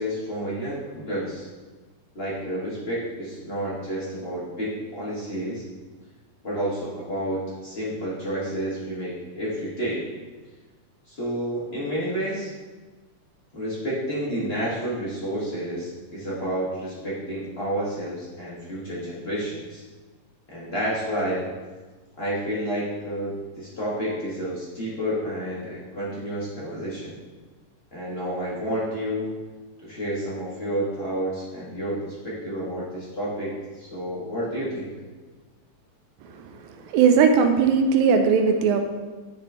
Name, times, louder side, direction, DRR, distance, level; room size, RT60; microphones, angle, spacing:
voice 1, 0.0-1.5 2.1-5.6 6.4-10.1 11.1-12.5 13.5-19.8 20.5-21.5 22.2-27.2 27.9-29.3 29.8-34.9, equal, 55° left, -7 dB, 0.6 m, -30 dB
voice 2, 36.8-38.8, right 6 dB, 80° right, 5 dB, 1.9 m, -19 dB
10.0 x 3.7 x 3.4 m, 1.3 s
omnidirectional pair, 3.4 m